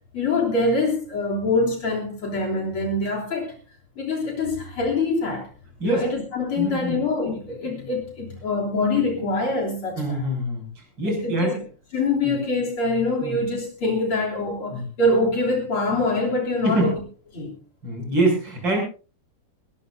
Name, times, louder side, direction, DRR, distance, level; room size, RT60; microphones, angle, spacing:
voice 1, 0.1-3.5 4.0-5.5 5.8-10.2 11.1-11.6 11.9-16.9 17.3-17.6, left 2 dB, 75° left, -1 dB, 4.2 m, -24 dB
voice 2, 6.6-7.0 7.7-7.9 9.9-11.6 12.2-12.3 13.2-13.4 14.7-14.8 16.6-16.9 17.8-18.8, right 1 dB, 55° right, 1 dB, 7.5 m, -25 dB
20.0 x 19.5 x 2.7 m, 0.36 s
omnidirectional pair, 2.4 m